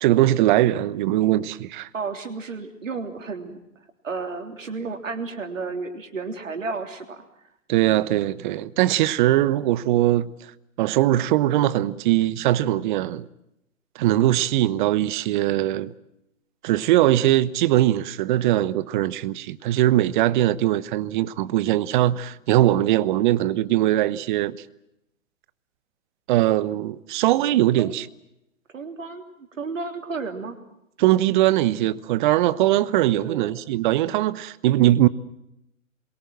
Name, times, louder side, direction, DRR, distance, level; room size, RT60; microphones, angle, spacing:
voice 1, 0.0-1.9 7.7-10.3 10.8-13.2 13.9-15.9 16.6-24.6 26.3-28.1 31.0-35.1, right 14 dB, 40° right, 1.0 m, -21 dB
voice 2, 1.9-3.6 4.0-7.2 27.8-28.0 28.7-30.6 33.2-33.6, right 4 dB, 75° right, 3.5 m, -32 dB
28.0 x 22.5 x 7.6 m
figure-of-eight pair, 120°, 39 cm